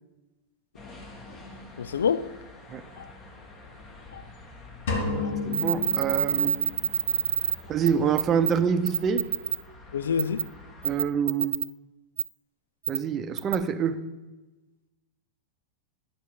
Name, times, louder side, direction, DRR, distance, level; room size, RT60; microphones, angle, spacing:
sound 1, 0.7-11.0, left 2 dB, 35° left, 2.4 m, -47 dB
voice 1, 1.8-2.3 3.0-3.1 4.1-4.3 5.2-5.4 9.9-10.5, left 6 dB, 85° left, 0.4 m, -27 dB
sound 2, 4.9-6.9, left 4 dB, 65° left, 1.9 m, -31 dB
voice 2, 5.2-6.6 7.7-9.3 10.8-11.6 12.9-14.0, right 7 dB, 35° right, 0.7 m, -26 dB
sound 3, 5.5-7.5 7.8-7.9 8.2-8.5 8.9-9.6 10.2-10.4 10.8-11.6 12.2-12.3 12.8-13.0 13.4-13.5, right 8 dB, 75° right, 0.5 m, -25 dB
10.5 x 6.6 x 5.1 m
hypercardioid pair, 100°, 0 cm